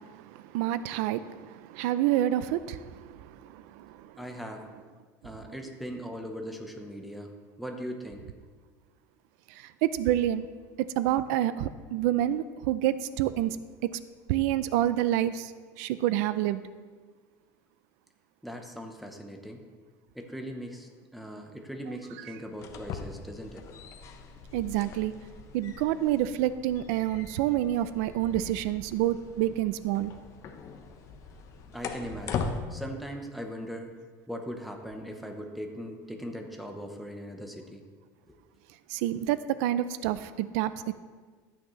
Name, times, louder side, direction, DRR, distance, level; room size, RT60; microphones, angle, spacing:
voice 1, 0.5-2.8 3.8-3.9 9.8-10.5 11.0-13.6 14.3-15.5 15.8-16.6 24.5-25.1 25.5-30.1 38.9-40.9, right 13 dB, 90° right, 14 dB, 0.4 m, -27 dB
voice 2, 4.2-4.6 5.2-8.2 18.4-19.6 20.1-23.6 31.7-33.9 34.3-37.8 38.3-38.4, equal, ahead, 3 dB, 0.8 m, -40 dB
sound 1, 22.5-32.6, left 5 dB, 40° left, 0.7 m, -40 dB
12.5 x 8.7 x 3.1 m, 1.5 s
cardioid pair, 170°, 8 cm